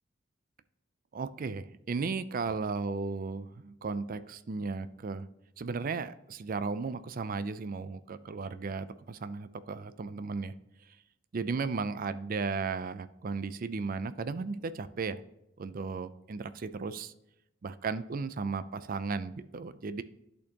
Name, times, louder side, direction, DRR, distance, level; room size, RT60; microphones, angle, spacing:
voice 1, 1.1-5.3 5.6-10.5 11.3-15.2 15.6-17.1 17.6-20.0, right 4 dB, 50° right, 13 dB, 0.4 m, -35 dB
11.0 x 4.3 x 2.9 m, 0.84 s
head